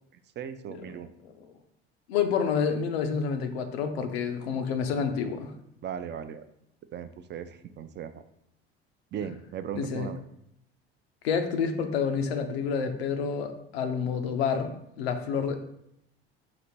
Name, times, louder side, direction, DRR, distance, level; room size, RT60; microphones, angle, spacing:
voice 1, 0.4-1.1 5.8-6.4 6.9-8.2 9.1-10.2, right 8 dB, 35° right, 11 dB, 0.4 m, -37 dB
voice 2, 2.1-5.5 9.7-10.1 11.2-15.7, left 6 dB, 90° left, 7 dB, 0.5 m, -29 dB
4.1 x 2.5 x 4.4 m, 0.77 s
hypercardioid pair, 70°, 31 cm